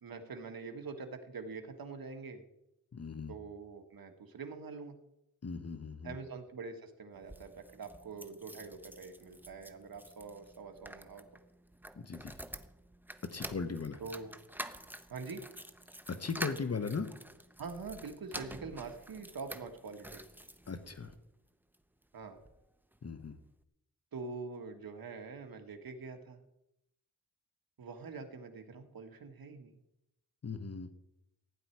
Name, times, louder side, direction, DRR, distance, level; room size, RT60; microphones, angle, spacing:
voice 1, 0.0-2.4 3.3-5.0 6.0-11.3 14.0-14.3 15.1-15.4 17.6-20.2 22.1-22.4 24.1-26.4 27.8-29.8, right 4 dB, 70° right, 5 dB, 1.8 m, -45 dB
voice 2, 2.9-3.3 5.4-6.2 12.0-12.4 13.3-14.0 16.1-17.1 20.7-21.2 23.0-23.4 30.4-30.9, left 5 dB, 45° left, 9 dB, 1.0 m, -38 dB
sound 1, 7.1-21.2 21.7-22.6 22.9-23.0 23.2-23.3, right 1 dB, 5° right, 0.8 m, -48 dB
16.0 x 9.6 x 4.7 m, 0.85 s
wide cardioid pair, 85°, 36 cm